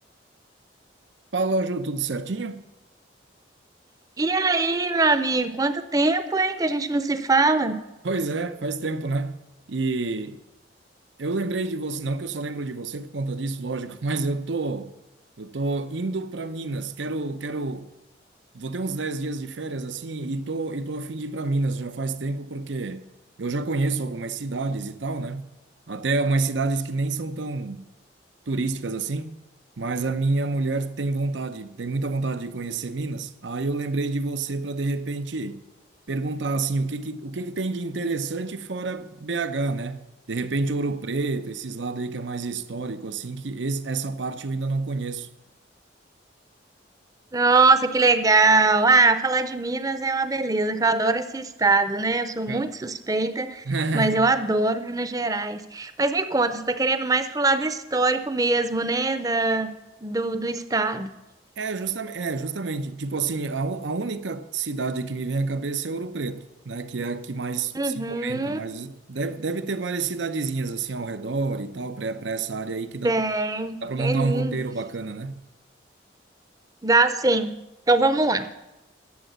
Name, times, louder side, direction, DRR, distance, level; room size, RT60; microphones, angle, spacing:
voice 1, 1.3-2.6 8.0-9.4 9.7-10.4 11.2-14.9 15.4-17.9 18.5-23.1 23.4-25.5 25.9-27.9 28.5-29.4 29.8-35.6 36.1-45.3 52.5-52.7 53.6-54.3 61.6-73.2 73.8-75.4, right 3 dB, 90° right, 0.7 m, -28 dB
voice 2, 4.2-7.8 47.3-53.6 53.9-59.7 60.0-61.1 67.7-68.6 73.0-74.6 76.8-77.6 77.9-78.5, right 3 dB, 20° right, 0.6 m, -22 dB
12.0 x 7.4 x 8.0 m
head